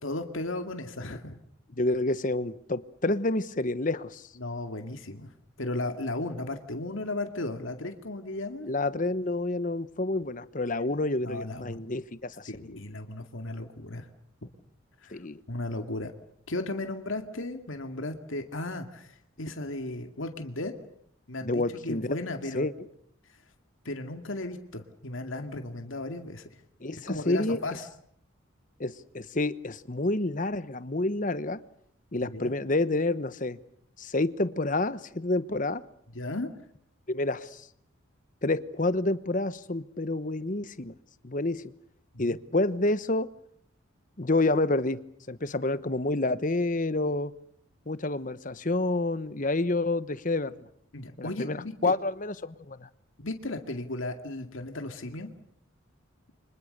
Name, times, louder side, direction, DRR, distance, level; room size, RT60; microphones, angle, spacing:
voice 1, 0.0-1.4 4.4-5.3 5.6-9.0 11.2-11.8 12.5-14.1 14.4-14.5 15.0-15.2 15.5-16.1 16.5-20.7 21.3-22.7 23.8-26.5 27.1-27.8 32.2-32.5 36.1-36.5 42.1-42.4 50.9-51.9 53.2-55.3, left 2 dB, 70° left, 6 dB, 2.3 m, -35 dB
voice 2, 1.8-4.3 8.7-12.7 15.1-15.4 21.4-22.2 22.5-22.7 26.8-27.6 28.8-31.6 32.1-33.6 34.0-35.8 37.1-37.7 38.4-40.9 41.2-41.7 42.2-43.3 44.2-45.0 45.3-47.3 47.9-50.6 51.2-52.9, left 2 dB, 40° left, 15 dB, 1.1 m, -28 dB
29.5 x 25.5 x 6.7 m, 0.68 s
head